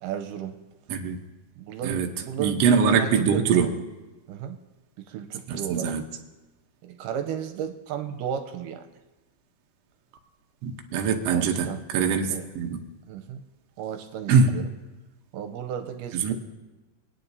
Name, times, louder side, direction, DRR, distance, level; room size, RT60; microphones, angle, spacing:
voice 1, 0.0-0.6 1.6-3.8 4.3-4.6 5.0-6.0 6.8-8.9 11.2-11.8 12.3-12.5 13.1-13.4 13.8-14.7 15.3-16.3, right 9 dB, 90° right, 7 dB, 2.3 m, -34 dB
voice 2, 2.4-3.7 5.5-6.0 10.6-12.7 14.3-14.5 16.1-16.3, right 5 dB, 65° right, 3 dB, 1.7 m, -23 dB
24.5 x 9.3 x 2.7 m, 1.1 s
omnidirectional pair, 3.7 m